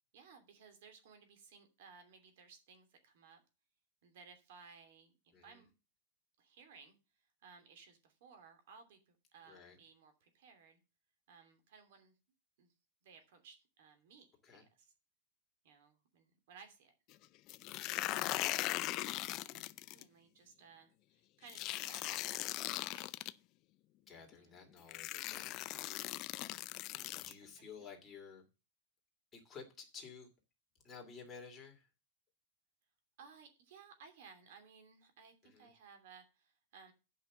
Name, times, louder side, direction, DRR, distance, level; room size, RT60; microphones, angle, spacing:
voice 1, 0.1-3.4 4.0-5.8 6.4-7.0 7.4-10.8 11.3-12.1 12.6-12.7 13.0-14.3 14.5-14.9 15.6-16.9 18.1-18.4 19.4-19.7 19.9-23.1 24.3-24.6 25.4-25.7 26.9-27.2 27.6-27.7 33.2-36.9, right 5 dB, 65° right, 7 dB, 2.8 m, -60 dB
voice 2, 9.5-9.8 14.4-14.6 21.8-22.3 24.1-25.6 27.1-28.4 29.3-30.3 30.8-31.9 35.4-35.7, left 5 dB, 15° left, 1 dB, 2.6 m, -53 dB
sound 1, 17.5-20.0 21.5-23.3 24.3-24.4 24.9-27.3, left 17 dB, 35° left, 0.4 m, -39 dB
8.5 x 5.7 x 7.2 m, 0.30 s
supercardioid pair, 150°, 0 cm